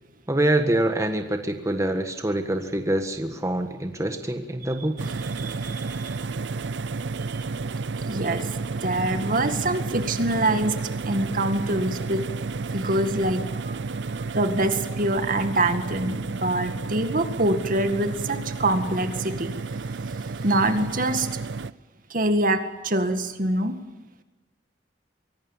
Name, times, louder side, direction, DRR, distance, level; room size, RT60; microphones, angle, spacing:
voice 1, 0.3-5.1, right 1 dB, 20° right, 6 dB, 1.5 m, -25 dB
sound 1, 5.0-21.7, right 4 dB, 90° right, 0.6 m, -31 dB
voice 2, 5.4-6.2 7.2-7.4 8.0-10.7 11.0-12.2 12.7-13.8 14.1-19.6 19.9-21.4 22.1-23.8, right 1 dB, 50° right, 8 dB, 2.0 m, -25 dB
24.0 x 18.0 x 7.3 m, 1.1 s
head